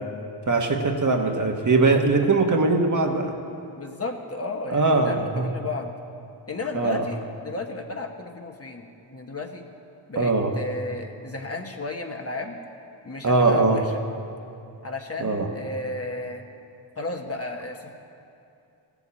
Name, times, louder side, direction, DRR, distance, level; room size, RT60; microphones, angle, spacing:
voice 1, 0.5-3.3 4.7-5.5 6.7-7.0 10.2-10.5 13.2-13.8 15.2-15.5, right 3 dB, 40° right, 3 dB, 1.3 m, -21 dB
voice 2, 3.8-5.9 6.5-9.7 10.1-12.6 13.0-14.0 14.8-16.4 17.0-17.9, left 2 dB, 30° left, 3 dB, 1.2 m, -33 dB
16.0 x 7.2 x 8.4 m, 2.6 s
cardioid pair, 85°, 46 cm